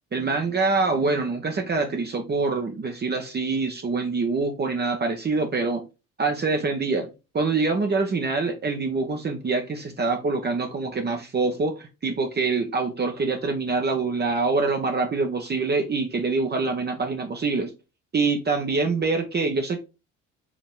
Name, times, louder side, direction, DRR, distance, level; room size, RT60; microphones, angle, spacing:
voice 1, 0.1-5.8 6.2-7.1 7.3-17.7 18.1-19.8, right 3 dB, 25° right, 0.9 m, -25 dB
4.8 x 3.0 x 3.7 m
hypercardioid pair, 60°, 38 cm